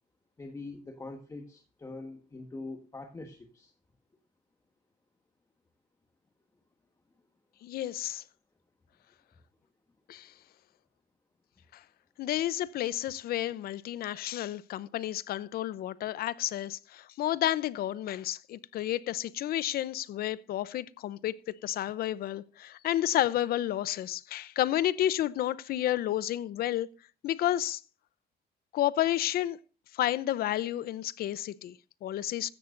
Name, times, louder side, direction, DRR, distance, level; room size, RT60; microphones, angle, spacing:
voice 1, 0.4-3.7, left 3 dB, 20° left, 1.4 m, -43 dB
voice 2, 7.6-8.2 10.1-10.3 11.7-11.8 12.2-26.9 27.2-27.8 28.7-29.6 29.9-32.5, left 13 dB, 65° left, 0.7 m, -31 dB
15.0 x 13.0 x 2.6 m
cardioid pair, 110°, 17 cm